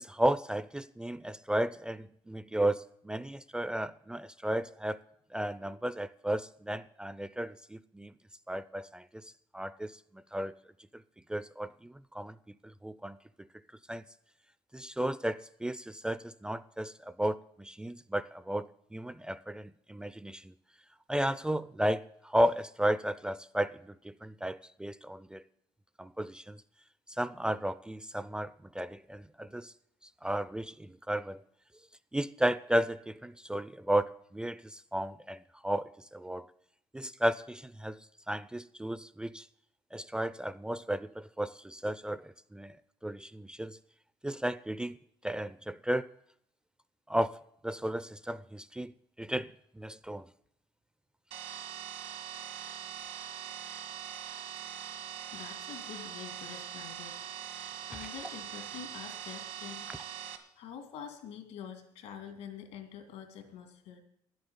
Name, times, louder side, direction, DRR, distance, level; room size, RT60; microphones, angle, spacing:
voice 1, 0.0-5.0 5.3-8.1 8.5-10.0 10.3-10.5 11.3-12.3 12.6-13.2 13.9-14.0 14.7-20.5 21.1-25.4 26.0-26.6 27.2-29.7 30.2-31.4 32.1-36.5 36.9-38.0 38.3-39.5 39.9-42.7 43.0-43.8 44.2-45.0 45.2-46.1 47.1-47.4 47.6-50.3, right 1 dB, 10° right, 0.4 m, -34 dB
sound 1, 51.3-60.4, right 10 dB, 75° right, 1.5 m, -42 dB
voice 2, 55.3-57.5 57.9-59.9 60.6-64.0, left 8 dB, 85° left, 2.4 m, -46 dB
11.0 x 8.0 x 9.5 m
cardioid pair, 90°, 11 cm